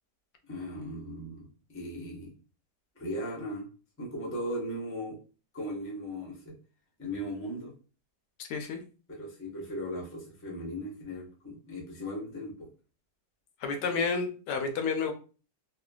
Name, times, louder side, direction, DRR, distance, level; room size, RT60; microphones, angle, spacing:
voice 1, 0.5-2.3 3.0-3.7 4.0-5.2 5.5-6.5 7.0-7.7 9.1-12.7, equal, 15° left, -3 dB, 0.4 m, -37 dB
voice 2, 8.4-8.8 13.6-15.1, left 5 dB, 80° left, 5 dB, 1.2 m, -30 dB
3.2 x 2.1 x 2.3 m, 0.37 s
omnidirectional pair, 1.8 m